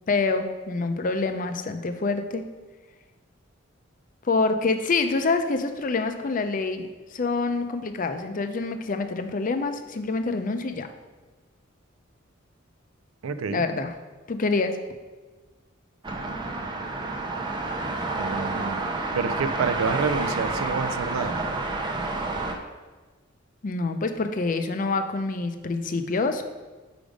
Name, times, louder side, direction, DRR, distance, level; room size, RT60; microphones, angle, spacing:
voice 1, 0.1-2.4 4.2-10.9 13.5-13.9 14.3-14.8 23.6-26.4, left 3 dB, 40° left, 8 dB, 0.5 m, -26 dB
voice 2, 13.2-13.7 18.2-18.9 19.1-21.4, right 5 dB, 85° right, 11 dB, 0.4 m, -28 dB
sound 1, 16.0-22.6, right 2 dB, 20° right, 0.5 m, -29 dB
5.1 x 5.0 x 5.0 m, 1.3 s
head